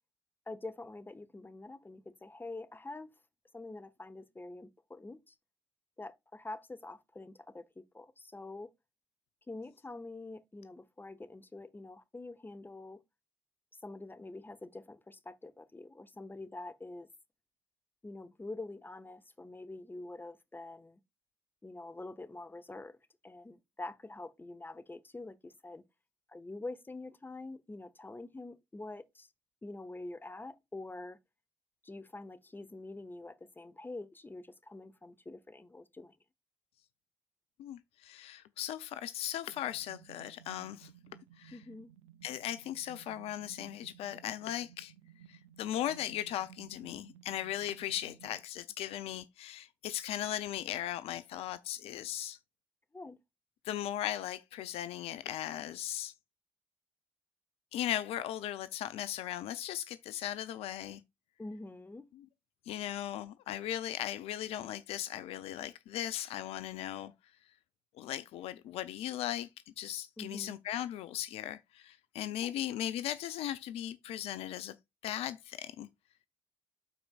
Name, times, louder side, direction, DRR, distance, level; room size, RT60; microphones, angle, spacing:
voice 1, 0.5-3.1 3.5-5.3 6.0-8.7 9.5-13.0 13.8-17.1 18.0-21.0 21.6-23.0 23.2-25.8 26.3-29.3 29.6-31.2 31.8-36.2 41.5-41.9 52.9-53.2 61.4-62.1 70.2-70.5 72.4-72.6, left 2 dB, 20° left, 0.9 m, -46 dB
voice 2, 37.6-40.9 41.4-41.6 42.2-44.9 45.3-52.4 53.6-56.1 57.7-61.0 62.1-62.3 62.6-67.1 67.9-74.7 75.0-75.9, left 12 dB, 70° left, 0.5 m, -38 dB
sound 1, 39.5-48.4, right 11 dB, 85° right, 0.5 m, -57 dB
12.5 x 4.4 x 2.4 m
hypercardioid pair, 45°, 11 cm